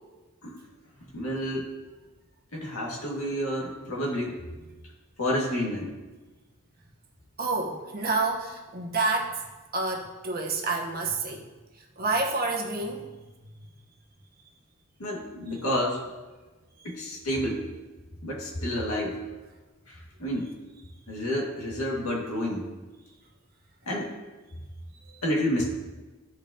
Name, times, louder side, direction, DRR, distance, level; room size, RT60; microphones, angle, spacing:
voice 1, 1.1-1.7 2.5-4.4 5.2-5.9 15.0-16.1 16.8-17.7 18.2-19.2 19.9-20.5 21.1-22.7 23.9-24.1 25.2-25.7, equal, 80° left, -2 dB, 1.9 m, -29 dB
voice 2, 7.4-9.4 9.7-11.5 12.0-13.1 13.5-13.6, right 3 dB, 45° right, 1 dB, 1.1 m, -28 dB
13.5 x 5.2 x 2.8 m, 1.2 s
head